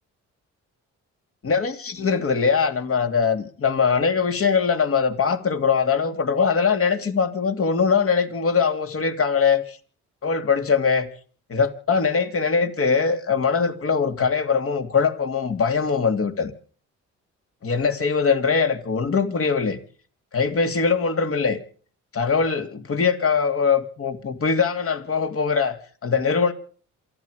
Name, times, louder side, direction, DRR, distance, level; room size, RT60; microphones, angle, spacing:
voice 1, 1.4-9.8 10.2-11.1 11.5-16.5 17.6-19.8 20.3-21.6 22.1-26.5, left 5 dB, 50° left, 3.0 m, -22 dB
28.0 x 9.8 x 5.1 m
cardioid pair, 90°, 30 cm